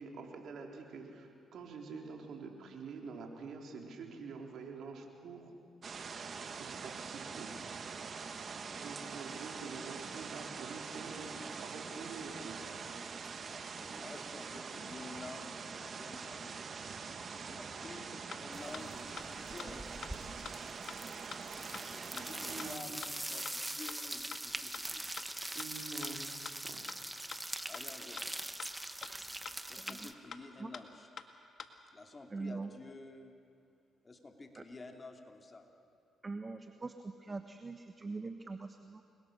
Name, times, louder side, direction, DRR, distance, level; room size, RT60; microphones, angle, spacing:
voice 1, 0.0-5.5 6.6-7.6 8.8-12.6 22.4-23.0 25.5-26.9, right 4 dB, 70° right, 2 dB, 3.8 m, -47 dB
sound 1, 5.8-22.8, right 5 dB, 50° right, 1.7 m, -44 dB
voice 2, 8.7-9.1 13.5-16.7 17.3-19.8 21.9-25.0 27.7-28.3 29.7-31.1 31.9-33.4 34.0-35.7, left 3 dB, 30° left, 3 dB, 3.0 m, -51 dB
sound 2, 17.9-18.0 18.3-18.4 18.7-18.8 19.2-19.3 19.6-19.7 20.0-20.1 20.5-20.6 20.9-21.0 21.3-21.4 21.7-21.8 22.2-22.3 22.6-22.7 23.0-23.1 23.5-23.6 23.9-24.0 24.3-24.4 24.7-24.8 25.2-25.3 25.6-25.7 26.0-26.1 26.5-26.6 26.9-27.0 27.3-27.4 27.7-27.8 28.2-28.3 28.6-28.7 29.0-29.1 29.5-29.6 29.9-30.0 30.3-30.4 30.7-30.8 31.2-31.3 31.6-31.7, left 6 dB, 55° left, 1.8 m, -44 dB
sound 3, 18.5-18.9 19.2-30.1, right 1 dB, 10° right, 1.3 m, -43 dB
voice 3, 29.8-30.1 30.6-30.7 32.3-32.7 34.6-34.7 36.2-39.0, right 3 dB, 30° right, 7 dB, 1.3 m, -43 dB
29.5 x 22.5 x 6.7 m, 2.6 s
cardioid pair, 75°, 0 cm